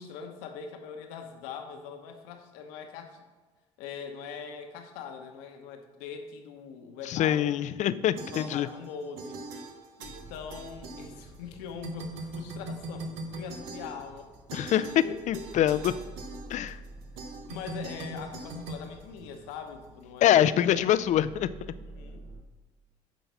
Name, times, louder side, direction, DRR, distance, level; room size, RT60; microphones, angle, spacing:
voice 1, 0.0-3.2 3.8-7.6 8.3-9.4 10.0-14.3 14.8-15.4 17.4-21.0 21.8-22.2, left 6 dB, 80° left, 5 dB, 1.1 m, -42 dB
voice 2, 7.1-8.7 14.5-14.8 15.3-15.9 16.5-16.8 20.2-21.5, left 11 dB, 55° left, 15 dB, 0.4 m, -24 dB
sound 1, 8.2-8.9 9.2-11.5 11.8-19.7, right 2 dB, 80° right, 0.9 m, -41 dB
sound 2, 10.0-22.4, right 2 dB, 40° right, 1.0 m, -50 dB
9.3 x 4.1 x 5.7 m, 1.3 s
hypercardioid pair, 65°, 15 cm